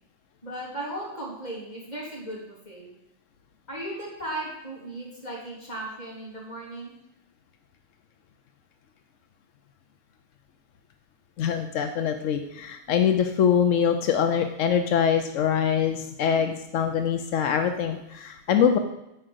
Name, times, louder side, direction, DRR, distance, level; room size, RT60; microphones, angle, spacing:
voice 1, 0.4-2.9 3.7-7.0, right 1 dB, 35° left, -4 dB, 3.5 m, -36 dB
voice 2, 11.4-18.8, left 8 dB, 85° left, 7 dB, 1.1 m, -24 dB
10.0 x 4.9 x 7.9 m, 0.90 s
omnidirectional pair, 1.3 m